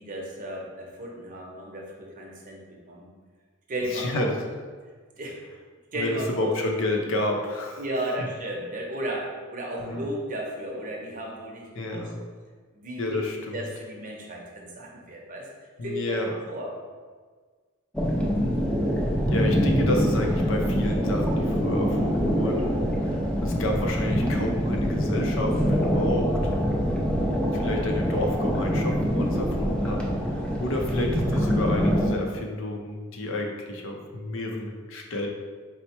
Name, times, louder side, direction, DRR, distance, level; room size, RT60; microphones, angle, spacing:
voice 1, 0.0-3.1 3.7-4.3 5.2-5.4 5.9-6.5 7.8-12.0 12.7-13.2 13.5-15.5 15.8-16.7, right 1 dB, 40° right, -1 dB, 0.7 m, -34 dB
voice 2, 3.9-4.4 6.0-7.8 9.8-10.0 11.7-12.2 13.0-13.5 15.8-16.3 19.3-22.7 23.1-26.4 27.5-35.3, left 2 dB, 65° left, 2 dB, 0.6 m, -30 dB
sound 1, 17.9-32.1, equal, 5° left, 0.4 m, -24 dB
4.3 x 2.1 x 4.3 m, 1.5 s
head